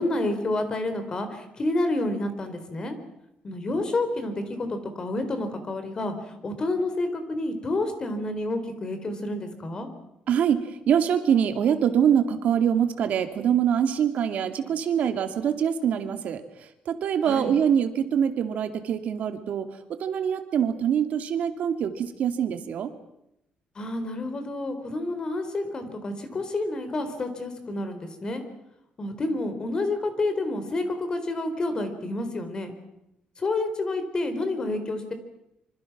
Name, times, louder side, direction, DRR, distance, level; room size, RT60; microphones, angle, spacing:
voice 1, 0.0-3.0 3.4-9.9 17.2-17.5 23.8-28.4 29.0-32.7 33.4-35.1, left 2 dB, 30° left, 8 dB, 3.9 m, -29 dB
voice 2, 10.3-10.6 10.9-16.4 16.9-19.7 20.0-22.9, right 8 dB, 65° right, 8 dB, 2.4 m, -24 dB
26.0 x 25.5 x 6.1 m, 0.83 s
cardioid pair, 145°, 3 cm